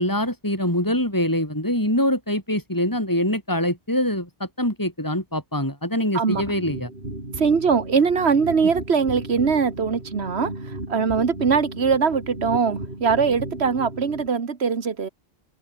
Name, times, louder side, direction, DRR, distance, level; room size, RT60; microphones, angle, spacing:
voice 1, 0.0-6.9, left 1 dB, 20° left, 5.3 m, -24 dB
sound 1, 6.3-14.3, right 1 dB, 60° right, 6.1 m, -35 dB
voice 2, 7.4-15.1, right 5 dB, 75° right, 1.9 m, -22 dB
open air
omnidirectional pair, 1.1 m